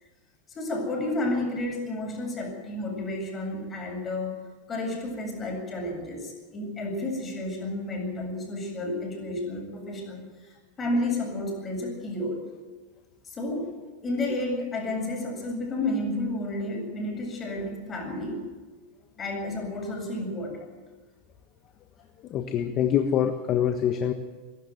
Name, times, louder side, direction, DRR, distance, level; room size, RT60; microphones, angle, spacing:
voice 1, 0.5-4.3 4.7-10.5 10.8-12.4 13.2-13.7 14.0-18.5 19.2-20.7, left 1 dB, 25° left, 1 dB, 7.8 m, -31 dB
voice 2, 22.2-24.1, left 9 dB, 40° left, 6 dB, 1.4 m, -25 dB
22.5 x 12.5 x 9.5 m, 1.3 s
supercardioid pair, 130°, 0 cm